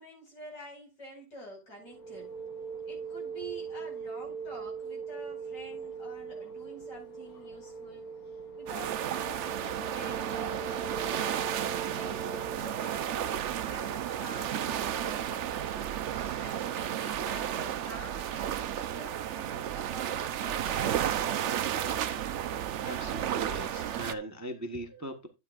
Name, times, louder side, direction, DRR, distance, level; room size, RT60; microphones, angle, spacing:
voice 1, 0.0-2.4 2.9-8.1 8.6-11.3 11.8-15.8 16.3-20.9, right 1 dB, 75° left, 5.7 m, -48 dB
sound 1, 1.8-12.6, right 6 dB, 55° left, 1.7 m, -41 dB
sound 2, 8.7-24.1, right 10 dB, 70° right, 0.6 m, -33 dB
voice 2, 22.8-25.3, right 1 dB, 15° right, 0.8 m, -40 dB
12.0 x 8.8 x 2.4 m
omnidirectional pair, 1.9 m